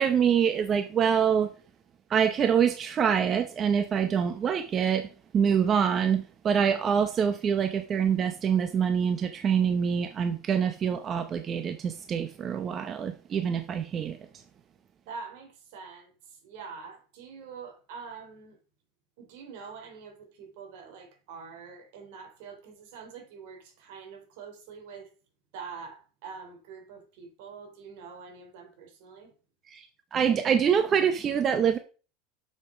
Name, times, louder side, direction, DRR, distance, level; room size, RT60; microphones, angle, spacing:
voice 1, 0.0-1.5 2.1-5.1 5.3-14.4 29.7-31.8, right 7 dB, 30° right, 0.8 m, -25 dB
voice 2, 15.1-18.6 19.2-25.1 25.5-29.3, right 5 dB, 70° right, 3.3 m, -45 dB
6.7 x 6.3 x 5.0 m
supercardioid pair, 125°, 0 cm